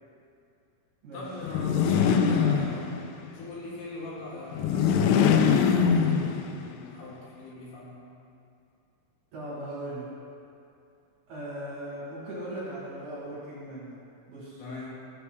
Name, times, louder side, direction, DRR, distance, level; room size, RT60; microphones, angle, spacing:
voice 1, 1.1-8.0 14.6-14.9, left 2 dB, 70° left, -6 dB, 3.0 m, -41 dB
sound 1, 1.4-3.2 4.5-6.7, left 7 dB, 90° left, 2.7 m, -23 dB
voice 2, 9.3-10.1 11.3-14.0 14.3-14.6, right 1 dB, 60° right, -8 dB, 2.9 m, -38 dB
13.0 x 6.9 x 2.3 m, 2.5 s
omnidirectional pair, 6.0 m